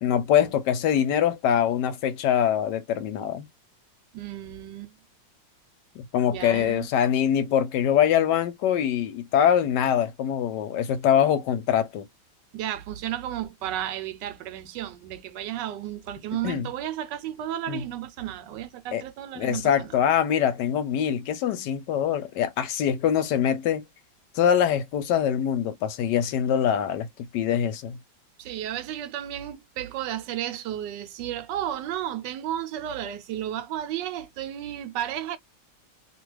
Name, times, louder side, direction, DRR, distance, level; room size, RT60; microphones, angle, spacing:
voice 1, 0.0-3.5 6.0-12.1 16.4-16.7 17.7-17.8 18.9-19.0 19.4-23.8 24.3-28.0, left 9 dB, 75° left, 1.2 m, -23 dB
voice 2, 4.1-4.9 6.3-6.9 12.5-19.9 28.4-35.4, right 11 dB, 75° right, 1.2 m, -33 dB
2.9 x 2.3 x 3.1 m
omnidirectional pair, 2.0 m